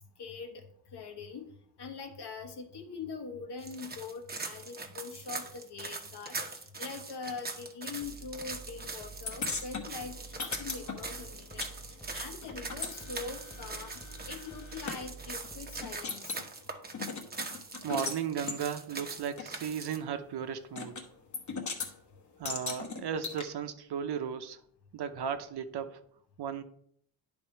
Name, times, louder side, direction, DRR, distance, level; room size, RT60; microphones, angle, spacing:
voice 1, 0.2-0.6 0.9-1.5 1.8-11.8 12.1-16.4, left 5 dB, 70° left, 4 dB, 1.3 m, -43 dB
sound 1, 3.6-20.0, right 3 dB, 20° right, 0.9 m, -42 dB
sound 2, 8.0-16.0, right 4 dB, 5° left, 0.5 m, -50 dB
sound 3, 9.3-11.7 12.0-15.0 15.4-15.5 15.8-16.5 16.9-18.2 18.5-18.6 19.4-19.5 20.8-21.1 21.3-21.9 22.4-23.4, left 4 dB, 40° left, 1.2 m, -38 dB
voice 2, 17.8-21.1 22.4-24.6 24.9-26.0 26.4-26.6, right 7 dB, 65° right, 9 dB, 0.8 m, -35 dB
10.5 x 3.6 x 4.5 m, 0.67 s
wide cardioid pair, 120°, 42 cm